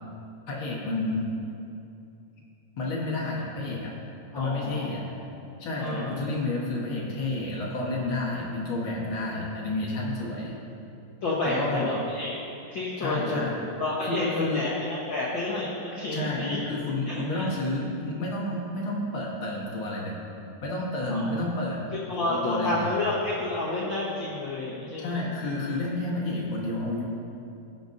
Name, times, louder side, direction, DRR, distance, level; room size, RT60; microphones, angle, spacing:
voice 1, 0.5-1.3 2.8-3.9 4.3-5.0 5.6-10.6 11.4-11.9 13.0-13.6 14.0-14.7 16.1-20.2 20.6-21.8 22.3-22.9 25.0-27.0, left 2 dB, 55° left, -4 dB, 1.5 m, -30 dB
voice 2, 4.3-4.9 5.8-6.2 11.2-12.4 12.7-13.4 13.8-16.6 17.1-17.5 21.1-21.3 22.1-25.2, left 2 dB, 75° left, -7 dB, 1.1 m, -30 dB
17.5 x 7.0 x 2.6 m, 2.6 s
omnidirectional pair, 4.0 m